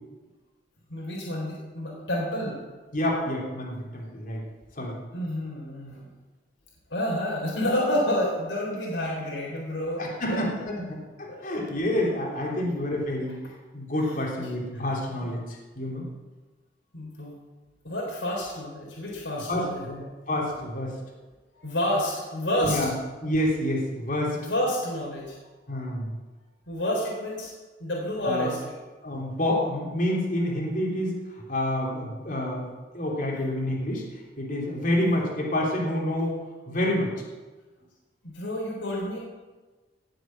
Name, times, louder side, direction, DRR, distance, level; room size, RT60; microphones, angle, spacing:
voice 1, 0.9-2.6 5.1-6.1 6.9-10.0 10.3-10.6 11.3-11.4 12.6-12.7 14.1-14.5 15.2-15.3 16.9-17.3 17.8-20.1 21.6-22.8 24.3-25.4 26.7-27.5 27.8-28.8 38.2-39.2, left 1 dB, 80° left, -3 dB, 3.8 m, -29 dB
voice 2, 2.9-4.5 4.8-5.0 10.0-13.4 13.7-16.1 19.5-19.9 20.3-21.0 22.6-22.9 23.2-24.4 25.7-26.1 28.2-28.5 29.0-32.7 32.9-34.0 34.4-37.1, left 1 dB, 45° left, -2 dB, 3.2 m, -28 dB
18.0 x 7.8 x 7.6 m, 1.3 s
head